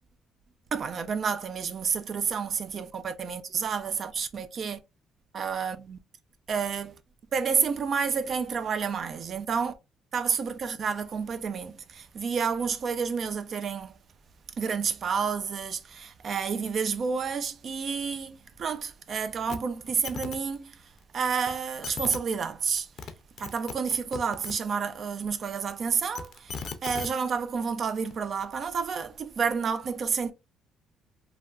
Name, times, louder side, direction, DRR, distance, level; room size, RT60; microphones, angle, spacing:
voice 1, 0.7-4.8 5.3-6.0 6.5-7.0 7.3-9.7 10.1-14.0 14.6-22.9 23.4-30.3, right 6 dB, 50° right, 0.5 m, -30 dB
sound 1, 19.5-19.6 19.9-20.4 21.5-21.6 21.8-22.2 22.8-23.1 23.4-24.5 25.9-27.1 28.1-28.2, left 5 dB, 55° left, 0.5 m, -37 dB
3.2 x 2.3 x 2.4 m
cardioid pair, 95°, 0 cm